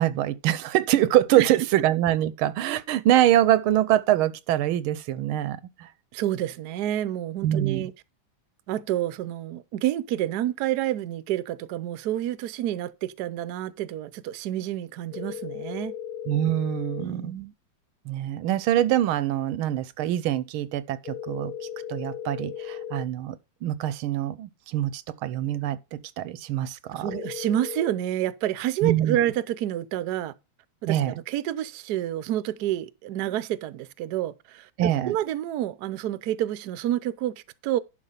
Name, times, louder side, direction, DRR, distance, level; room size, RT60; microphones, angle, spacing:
voice 1, 0.0-5.9 7.4-7.9 16.3-17.3 18.1-21.5 21.9-23.4 23.6-27.1 28.8-29.2 30.9-31.1 34.8-35.2, right 12 dB, 85° right, 1.5 m, -24 dB
voice 2, 6.1-7.9 8.7-15.9 17.0-17.5 26.9-30.3 30.8-34.7 35.0-37.8, right 12 dB, 65° right, 1.0 m, -29 dB
sound 1, 15.1-17.0 21.0-23.0 27.0-27.9, left 10 dB, 85° left, 1.6 m, -36 dB
11.0 x 4.6 x 5.6 m
omnidirectional pair, 2.3 m